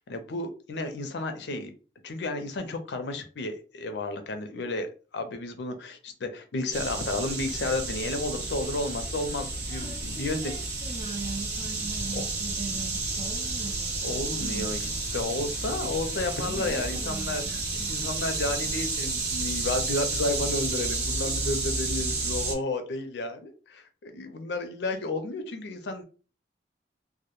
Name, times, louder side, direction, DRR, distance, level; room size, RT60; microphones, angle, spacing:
voice 1, 0.0-1.7 2.0-10.5 12.1-12.2 14.0-17.6 17.9-26.0, left 2 dB, 70° left, 7 dB, 0.5 m, -32 dB
sound 1, 6.7-22.5, right 3 dB, 65° right, 0.7 m, -31 dB
voice 2, 9.7-15.1 16.4-18.0, right 4 dB, 25° right, -2 dB, 0.5 m, -41 dB
2.1 x 2.0 x 2.9 m, 0.36 s
head